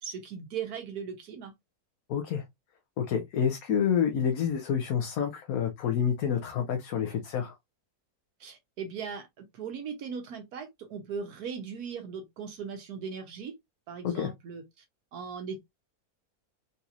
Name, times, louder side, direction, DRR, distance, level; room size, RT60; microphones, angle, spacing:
voice 1, 0.0-1.5 8.4-13.5 13.9-14.8 15.1-15.6, right 6 dB, 75° right, 1.2 m, -38 dB
voice 2, 2.1-2.4 3.0-7.5 14.0-14.3, left 8 dB, 70° left, 1.1 m, -28 dB
4.0 x 2.8 x 2.4 m
omnidirectional pair, 1.7 m